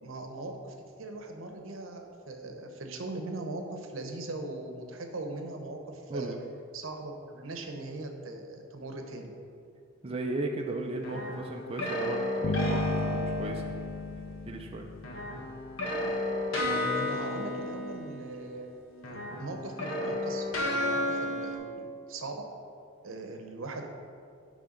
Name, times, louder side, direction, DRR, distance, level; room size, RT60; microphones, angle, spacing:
voice 1, 0.0-6.4 6.7-9.3 16.6-18.7 19.1-22.4 23.0-23.9, right 2 dB, 85° right, 4 dB, 0.8 m, -40 dB
voice 2, 6.1-6.4 10.0-13.7 14.5-14.9, right 2 dB, 30° right, 2 dB, 0.5 m, -36 dB
sound 1, 11.0-14.1 15.0-18.7 19.0-21.6, left 1 dB, 80° left, 1.4 m, -33 dB
sound 2, 12.4-15.8, left 3 dB, 55° left, 0.5 m, -34 dB
9.7 x 3.3 x 5.1 m, 2.4 s
head